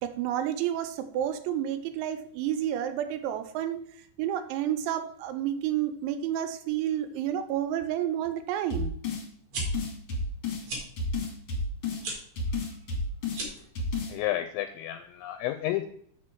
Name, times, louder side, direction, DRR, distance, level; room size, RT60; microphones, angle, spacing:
voice 1, 0.0-3.9 4.2-8.9, right 11 dB, 85° right, 10 dB, 2.8 m, -30 dB
sound 1, 8.7-9.2 9.6-10.6 11.0-12.0 12.4-13.4 13.7-14.1, left 3 dB, 45° left, 1.8 m, -31 dB
sound 2, 9.3-9.6 10.6-10.8 12.0-12.2 13.3-13.7, right 2 dB, 55° right, 1.5 m, -35 dB
voice 2, 14.1-15.9, left 14 dB, 85° left, 8 dB, 2.7 m, -31 dB
7.7 x 6.0 x 4.6 m, 0.64 s
omnidirectional pair, 5.5 m